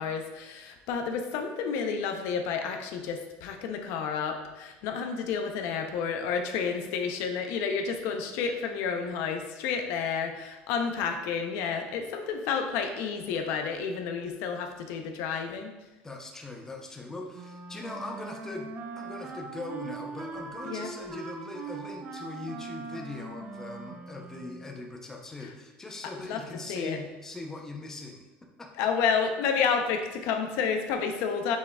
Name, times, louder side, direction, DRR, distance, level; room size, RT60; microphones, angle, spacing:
voice 1, 0.0-15.7 20.6-20.9 26.3-26.4 26.7-27.0 28.8-31.6, left 6 dB, 70° left, 5 dB, 0.5 m, -30 dB
voice 2, 16.0-18.7 19.0-28.2 28.6-28.9, left 2 dB, 10° left, 1 dB, 0.6 m, -40 dB
Wind instrument woodwind instrument, 17.3-24.8, right 4 dB, 35° right, 0.5 m, -41 dB
6.2 x 3.5 x 2.2 m, 1.1 s
cardioid pair, 135°, 4 cm